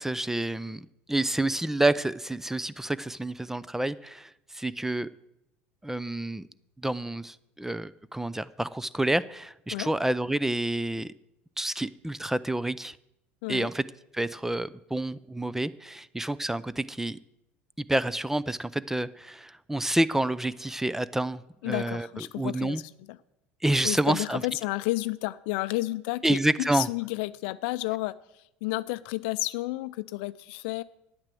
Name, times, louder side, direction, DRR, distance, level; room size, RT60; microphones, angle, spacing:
voice 1, 0.0-5.1 5.8-6.5 6.8-11.1 11.6-13.0 13.5-13.8 14.1-17.2 17.9-22.1 22.4-22.8 23.6-24.4 26.2-26.9, right 1 dB, 5° right, 18 dB, 0.4 m, -28 dB
voice 2, 21.6-22.8 23.1-23.2 23.8-28.1 28.6-30.8, left 19 dB, 70° left, 16 dB, 0.5 m, -31 dB
9.7 x 8.8 x 7.6 m, 0.85 s
hypercardioid pair, 80°, 6 cm